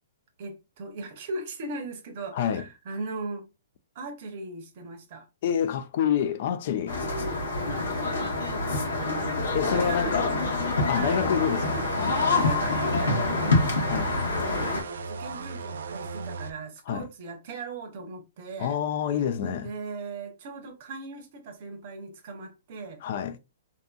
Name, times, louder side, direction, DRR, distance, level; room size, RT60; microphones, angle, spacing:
voice 1, 0.4-3.5 3.9-5.3 7.6-8.1 8.9-9.3 9.7-10.4 10.9-11.3 12.3-13.6 14.2-18.8 19.4-23.0, right 3 dB, 50° right, 0.7 m, -38 dB
voice 2, 2.3-2.7 5.4-7.0 9.5-10.4 10.9-12.3 13.9-14.1 16.9-17.1 18.6-19.7 23.0-23.4, left 8 dB, 55° left, 0.3 m, -27 dB
sound 1, 6.9-14.8, left 3 dB, 85° left, 1.0 m, -26 dB
sound 2, 11.0-16.5, right 4 dB, 75° right, 0.3 m, -37 dB
2.6 x 2.5 x 2.2 m
hypercardioid pair, 140°, 0 cm